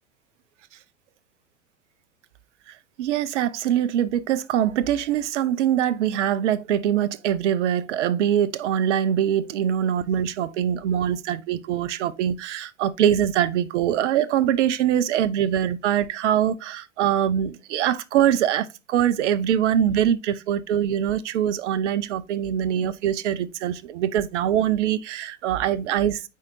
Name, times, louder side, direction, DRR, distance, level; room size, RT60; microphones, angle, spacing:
voice 1, 2.7-26.3, right 10 dB, 70° right, 0.6 m, -23 dB
8.2 x 4.6 x 2.6 m
hypercardioid pair, 90°, 37 cm